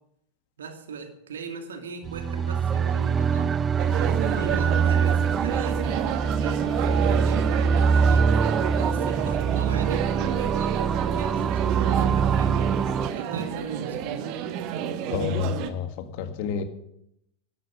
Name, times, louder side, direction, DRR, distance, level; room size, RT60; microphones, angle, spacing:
voice 1, 0.6-3.6 4.0-6.1 6.4-8.2 8.7-12.8 13.1-14.2, right 5 dB, 65° right, 6 dB, 2.4 m, -38 dB
sound 1, 2.0-13.1, right 6 dB, 20° right, 0.4 m, -24 dB
sound 2, 3.8-15.7, right 9 dB, 40° right, 1.3 m, -30 dB
voice 2, 15.1-15.9 16.2-16.6, left 8 dB, 45° left, 9 dB, 1.8 m, -29 dB
12.5 x 12.0 x 6.4 m, 0.76 s
figure-of-eight pair, 90°, 0 cm